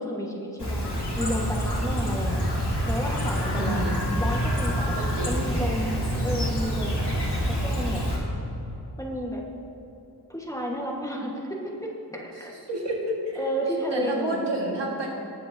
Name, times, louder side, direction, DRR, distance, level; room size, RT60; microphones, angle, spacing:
voice 1, 0.0-2.4 2.9-5.0 5.3-7.1 7.5-8.0 9.0-9.4 10.3-12.5 13.4-14.6, equal, 10° left, -2 dB, 1.4 m, -32 dB
Chirp tweet, 0.6-8.2, equal, 70° left, 2.1 m, -27 dB
voice 2, 3.6-4.1 4.9-5.5 12.7-13.4 13.9-15.1, right 1 dB, 90° right, -2 dB, 1.8 m, -30 dB
19.0 x 7.6 x 2.8 m, 3.0 s
wide cardioid pair, 60°, 41 cm